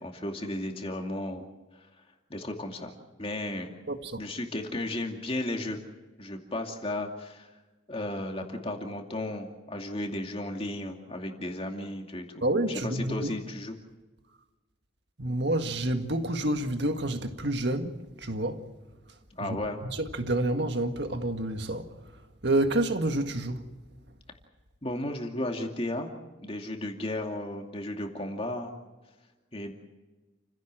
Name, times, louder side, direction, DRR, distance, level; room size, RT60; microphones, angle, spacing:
voice 1, 0.0-1.5 1.8-1.9 2.3-3.8 4.2-5.8 6.2-7.5 7.9-12.4 12.7-13.8 19.4-19.8 24.8-26.1 26.4-28.7 29.5-29.7, left 1 dB, 30° left, 2.5 m, -34 dB
voice 2, 3.9-4.2 12.4-13.3 15.2-18.7 19.4-21.9 22.4-23.7, right 1 dB, 55° right, 1.8 m, -29 dB
29.5 x 16.5 x 7.6 m
head